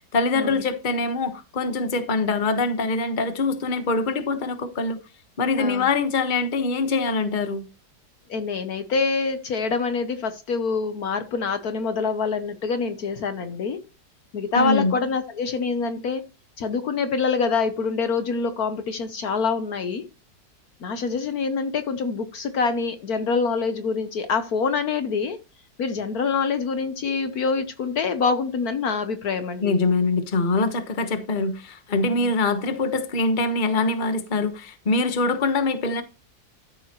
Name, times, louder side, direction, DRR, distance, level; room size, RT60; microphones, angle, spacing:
voice 1, 0.0-5.0 5.4-7.6 14.5-14.9 29.6-36.0, left 3 dB, 30° left, 1.2 m, -24 dB
voice 2, 5.6-5.9 8.3-13.8 14.3-16.2 16.6-20.1 20.8-25.4 25.8-29.7 32.1-32.3, left 5 dB, 60° left, 1.3 m, -25 dB
13.5 x 7.1 x 3.0 m
omnidirectional pair, 1.9 m